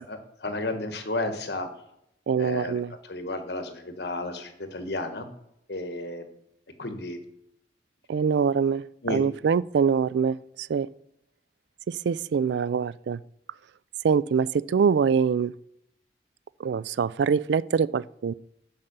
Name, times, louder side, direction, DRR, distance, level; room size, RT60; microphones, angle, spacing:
voice 1, 0.1-1.7 2.4-2.7 3.1-5.3 5.7-6.2 6.8-7.2 9.0-9.2, left 2 dB, 65° left, 1.3 m, -32 dB
voice 2, 2.3-2.9 8.1-10.9 11.9-13.2 14.0-15.5 16.6-18.3, right 6 dB, 75° right, 0.3 m, -24 dB
7.2 x 5.6 x 6.7 m
head